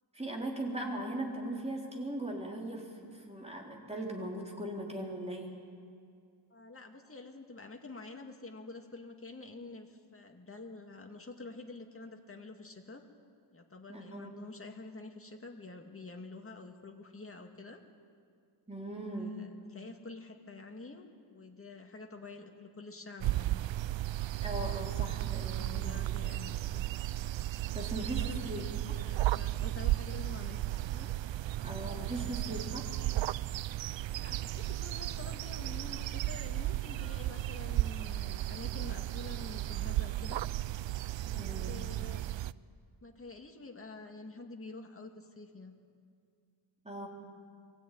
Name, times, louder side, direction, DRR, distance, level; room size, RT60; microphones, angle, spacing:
voice 1, 0.1-5.5 13.9-14.3 18.7-19.4 24.4-26.0 27.7-28.9 31.6-32.9 41.3-41.8 46.8-47.1, right 1 dB, 15° right, -1 dB, 3.7 m, -39 dB
voice 2, 6.5-13.0 13.5-17.8 19.1-23.7 25.3-26.8 28.0-28.7 28.9-31.2 34.1-40.4 41.3-42.2 43.0-45.7, left 3 dB, 30° left, 3 dB, 2.1 m, -48 dB
sound 1, 23.2-42.5, right 15 dB, 70° right, 0.5 m, -34 dB
23.5 x 16.0 x 9.3 m, 2.2 s
wide cardioid pair, 110°, 47 cm